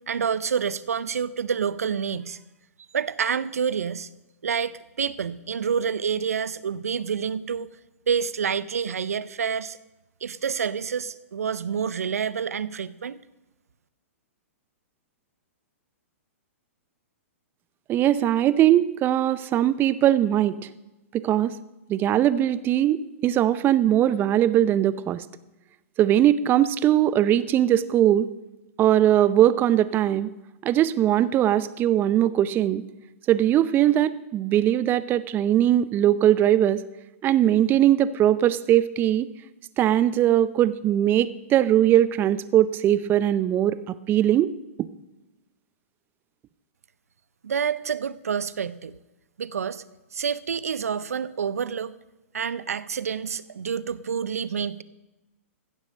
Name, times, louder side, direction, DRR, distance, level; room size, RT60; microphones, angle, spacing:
voice 1, 0.0-2.4 2.9-4.1 4.4-7.7 8.1-9.8 10.2-13.2 47.4-48.9 49.4-49.8 50.1-52.0 52.3-54.8, right 7 dB, 85° right, 18 dB, 0.6 m, -28 dB
voice 2, 17.9-20.6 21.1-21.5 21.9-25.2 26.0-28.3 28.8-30.3 30.6-32.8 33.3-36.8 37.2-39.3 39.8-44.5, right 12 dB, 25° right, 16 dB, 0.6 m, -20 dB
15.5 x 7.4 x 6.3 m, 1.0 s
hypercardioid pair, 120°, 8 cm